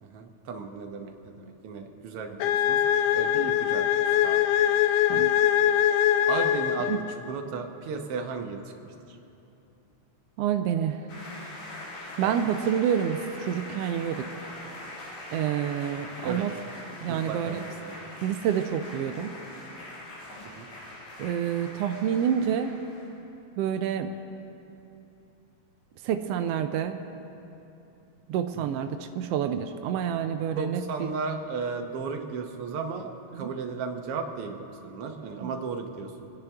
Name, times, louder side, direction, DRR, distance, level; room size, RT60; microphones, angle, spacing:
voice 1, 0.0-2.8 3.1-4.4 6.3-6.9 7.3-9.2 12.2-12.4 16.2-16.5 17.1-18.0 20.6-20.7 28.5-28.8 30.6-36.3, right 4 dB, 65° right, 4 dB, 1.7 m, -35 dB
sound 1, 2.4-7.3, left 11 dB, 85° left, 1.4 m, -23 dB
voice 2, 10.4-11.1 12.2-14.3 15.3-16.5 17.0-17.7 18.2-19.3 21.2-22.7 23.6-24.1 26.0-27.0 28.3-31.1 33.3-33.5 35.4-35.5, right 9 dB, 85° right, 7 dB, 1.3 m, -28 dB
sound 2, 11.1-23.2, left 1 dB, 70° left, 3.4 m, -42 dB
28.0 x 10.0 x 3.5 m, 2.8 s
omnidirectional pair, 3.3 m